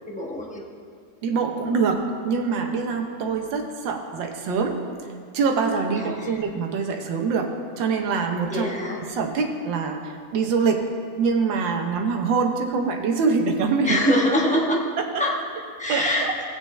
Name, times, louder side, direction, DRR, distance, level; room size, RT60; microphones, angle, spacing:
voice 1, 0.1-0.6 6.0-6.4 8.5-9.0 13.8-14.8 15.2-15.3 15.8-16.3, left 1 dB, 5° left, -3 dB, 0.8 m, -24 dB
voice 2, 1.2-4.8 5.3-8.7 9.0-10.9 11.2-14.0 15.0-15.1 15.9-16.3, right 5 dB, 85° right, 4 dB, 1.7 m, -24 dB
17.5 x 6.6 x 3.2 m, 2.1 s
omnidirectional pair, 2.0 m